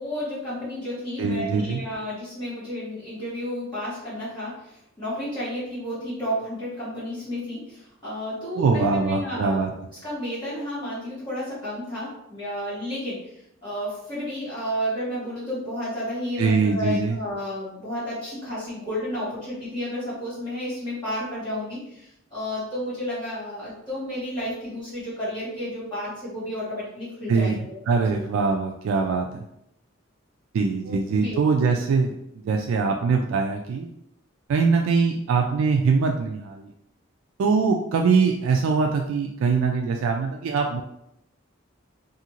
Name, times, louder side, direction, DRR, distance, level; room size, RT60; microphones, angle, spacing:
voice 1, 0.0-9.6 10.0-13.2 13.6-27.8 28.1-28.3 30.8-31.6, equal, 25° left, -13 dB, 1.5 m, -32 dB
voice 2, 1.2-1.8 8.6-9.7 16.4-17.2 27.3-27.6 27.9-29.4 30.5-33.9 34.5-36.7 37.4-40.8, right 4 dB, 85° right, 3 dB, 0.3 m, -22 dB
2.7 x 2.5 x 2.9 m, 0.79 s
head